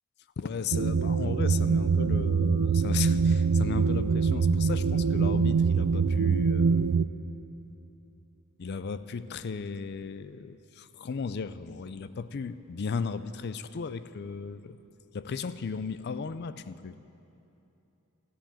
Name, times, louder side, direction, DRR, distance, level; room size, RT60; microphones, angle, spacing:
voice 1, 0.4-6.9 8.6-14.8 15.1-16.9, left 5 dB, 50° left, 13 dB, 0.4 m, -36 dB
sound 1, 0.7-7.0, right 5 dB, 70° right, 0.4 m, -24 dB
14.0 x 7.7 x 8.7 m, 2.9 s
head